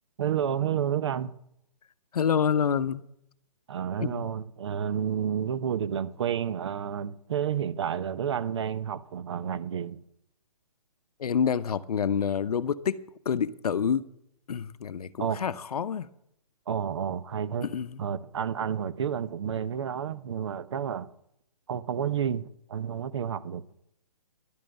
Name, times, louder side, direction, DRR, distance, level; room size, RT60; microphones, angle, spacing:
voice 1, 0.2-1.4 3.7-10.0 15.2-15.5 16.7-17.7 18.0-21.1 21.7-23.6, right 8 dB, 45° right, 0.7 m, -30 dB
voice 2, 2.1-3.0 4.0-4.3 11.2-14.0 14.5-16.1 17.6-18.0, left 7 dB, 70° left, 0.7 m, -27 dB
11.5 x 7.3 x 7.8 m
hypercardioid pair, 165°, 20 cm